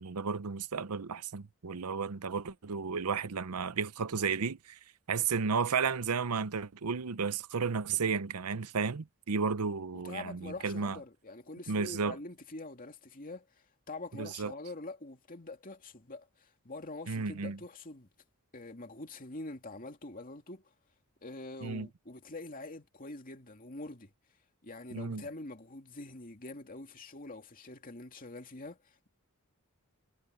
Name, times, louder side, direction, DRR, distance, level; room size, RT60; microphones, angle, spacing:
voice 1, 0.0-4.8 5.1-11.0 11.7-12.2 14.2-14.5 17.1-17.6 21.6-21.9 24.9-25.2, right 5 dB, 90° right, 0.7 m, -33 dB
voice 2, 9.9-13.5 13.9-18.1 18.5-20.7 21.2-24.1 24.6-29.1, left 2 dB, 40° left, 2.5 m, -45 dB
head